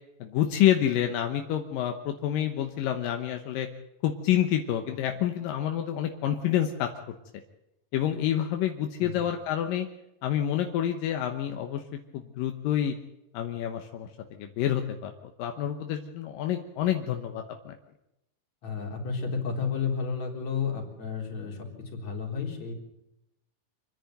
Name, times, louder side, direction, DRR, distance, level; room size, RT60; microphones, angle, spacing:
voice 1, 0.2-3.7 4.0-6.9 7.9-9.9 10.2-11.8 12.1-12.9 13.3-14.1 14.4-15.1 15.4-17.7, left 11 dB, 85° left, 5 dB, 2.8 m, -28 dB
voice 2, 18.6-22.7, left 5 dB, 55° left, 1 dB, 4.9 m, -32 dB
27.0 x 10.5 x 9.2 m, 0.87 s
omnidirectional pair, 3.9 m